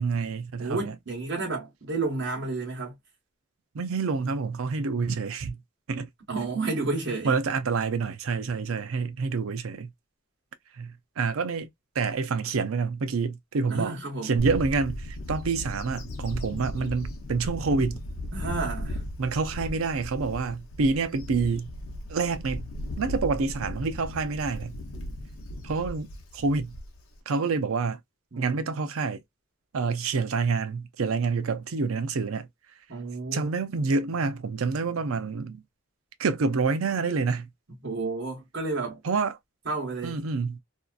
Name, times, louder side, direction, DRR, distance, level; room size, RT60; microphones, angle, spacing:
voice 1, 0.0-1.0 3.7-5.6 5.9-6.1 7.2-9.9 10.7-11.7 12.0-13.9 14.2-18.0 19.2-21.7 22.1-22.7 23.0-24.8 25.6-26.8 27.3-28.0 28.4-29.2 29.7-32.5 33.3-35.6 36.2-37.5 39.0-39.4 40.0-40.6, right 4 dB, 80° right, 0.5 m, -27 dB
voice 2, 0.6-3.0 6.3-7.4 13.7-14.4 18.3-19.0 28.3-28.9 32.9-33.5 37.8-39.0 39.7-40.2, right 3 dB, 60° right, 1.1 m, -31 dB
Bird / Wind, 14.4-27.2, left 1 dB, 85° left, 0.7 m, -36 dB
2.7 x 2.4 x 2.3 m
head